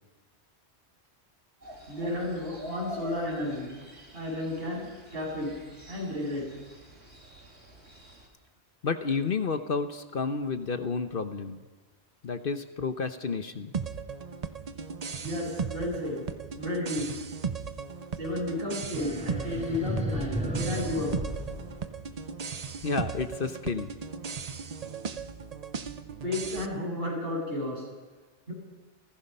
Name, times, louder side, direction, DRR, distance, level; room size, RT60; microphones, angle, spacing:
sound 1, 1.6-8.3, equal, 75° right, 3.4 m, -45 dB
voice 1, 1.9-3.7 4.1-5.5 5.9-6.5 15.2-16.2 16.6-17.2 18.2-21.1 26.2-27.9 28.5-28.6, left 1 dB, 60° right, -3 dB, 7.5 m, -32 dB
voice 2, 8.8-11.6 12.2-13.7 22.8-23.9, left 5 dB, 55° left, 9 dB, 1.1 m, -31 dB
sound 2, 13.7-26.7, right 5 dB, 40° right, 0.7 m, -37 dB
sound 3, 19.0-22.4, equal, 5° right, 3.3 m, -34 dB
29.0 x 16.5 x 5.5 m, 1.3 s
omnidirectional pair, 1.1 m